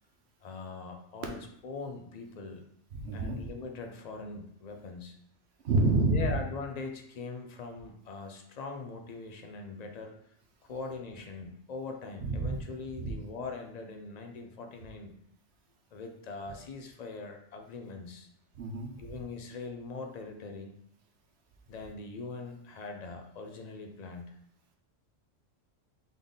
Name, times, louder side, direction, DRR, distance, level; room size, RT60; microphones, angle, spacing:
voice 1, 0.4-2.6 3.1-5.2 6.1-10.1 10.6-15.1 15.9-18.3 19.0-20.7 21.7-24.4, left 4 dB, 50° left, 4 dB, 0.5 m, -41 dB
voice 2, 2.9-3.4 5.6-6.3 12.2-12.6 13.0-13.1 18.5-19.1, right 2 dB, 60° right, 2 dB, 1.0 m, -28 dB
3.7 x 3.5 x 3.9 m, 0.73 s
omnidirectional pair, 1.3 m